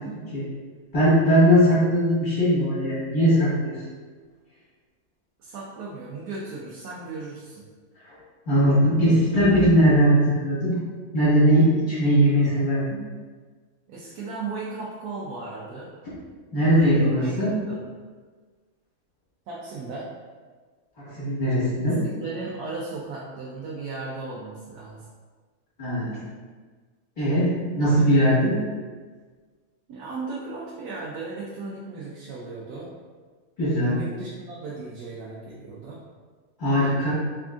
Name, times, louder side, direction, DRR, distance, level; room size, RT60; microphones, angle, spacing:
voice 1, 0.9-3.8 8.1-8.2 8.5-10.8 11.1-13.0 16.5-17.6 21.0-22.0 25.8-26.2 27.2-28.6 33.6-34.0 36.6-37.1, equal, 30° left, -10 dB, 1.6 m, -20 dB
voice 2, 5.4-7.6 13.9-15.9 16.7-17.3 17.7-17.8 19.5-20.1 22.0-25.1 29.9-33.0 33.9-36.0, right 3 dB, 90° right, -5 dB, 1.1 m, -36 dB
3.7 x 3.4 x 2.4 m, 1.5 s
omnidirectional pair, 1.6 m